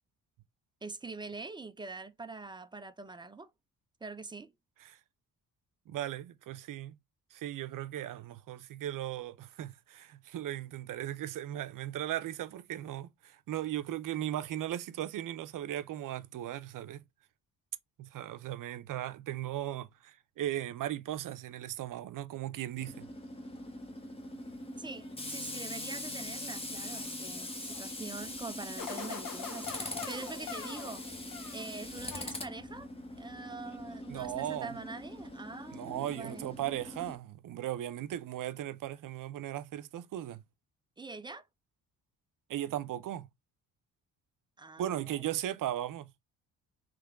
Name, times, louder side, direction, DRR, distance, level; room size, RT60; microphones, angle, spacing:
voice 1, 0.8-3.5 4.0-4.5 24.8-31.1 31.5-32.9 33.1-36.5 41.0-41.5 44.6-45.4, right 3 dB, 15° right, 0.4 m, -44 dB
voice 2, 5.9-7.0 7.3-17.0 18.0-23.1 34.1-34.8 35.7-40.4 42.5-43.3 44.8-46.1, right 12 dB, 60° right, 0.6 m, -37 dB
Tools, 22.8-37.2, left 1 dB, 15° left, 0.9 m, -42 dB
sound 1, 28.8-31.7 32.1-32.8, left 6 dB, 65° left, 1.3 m, -43 dB
3.6 x 3.3 x 3.4 m
cardioid pair, 125°, 35 cm